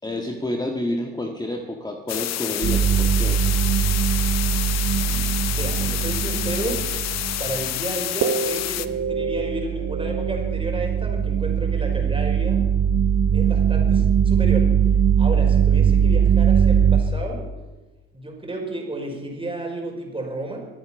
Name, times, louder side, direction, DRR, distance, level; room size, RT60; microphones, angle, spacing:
voice 1, 0.0-3.4, left 1 dB, 15° left, 3 dB, 1.7 m, -29 dB
sound 1, 2.1-8.9, left 13 dB, 60° left, 0.8 m, -28 dB
sound 2, 2.6-7.8 8.2-17.0, right 8 dB, 55° right, 1.3 m, -21 dB
voice 2, 4.9-6.9 7.4-12.6 13.3-14.7 15.2-17.5 18.1-20.7, right 2 dB, 15° right, 1 dB, 5.2 m, -32 dB
24.0 x 8.8 x 5.9 m, 1.2 s
hypercardioid pair, 65°, 30 cm